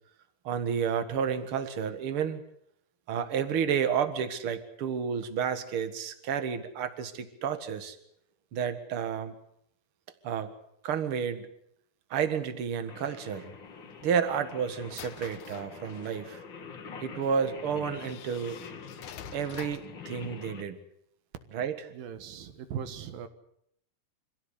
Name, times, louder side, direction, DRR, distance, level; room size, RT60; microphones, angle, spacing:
voice 1, 0.4-2.4 3.1-8.0 8.5-9.4 10.2-10.5 10.8-11.5 12.1-13.5 14.0-16.4 17.0-18.6 19.3-20.8 21.5-21.7, right 7 dB, 45° right, 10 dB, 2.0 m, -31 dB
Singing, 12.9-20.6, left 5 dB, 45° left, 1.7 m, -46 dB
sound 1, 13.9-16.4 17.2-17.3 17.9-20.0, left 10 dB, 65° left, 2.1 m, -47 dB
voice 2, 21.9-23.3, right 8 dB, 80° right, 10 dB, 3.3 m, -39 dB
25.5 x 16.5 x 8.3 m, 0.73 s
omnidirectional pair, 4.1 m